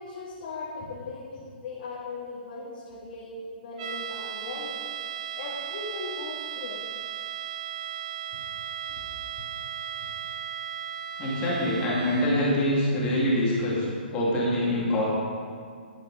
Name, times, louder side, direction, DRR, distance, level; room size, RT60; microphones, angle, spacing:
voice 1, 0.0-4.9 5.4-6.8 8.9-9.0, left 3 dB, 45° left, -7 dB, 2.0 m, -38 dB
sound 1, 3.8-12.5, right 9 dB, 40° right, 0.6 m, -36 dB
voice 2, 11.2-13.8 14.1-15.0, left 1 dB, 20° left, -6 dB, 2.2 m, -25 dB
10.0 x 7.3 x 4.9 m, 2.1 s
hypercardioid pair, 155°, 6 cm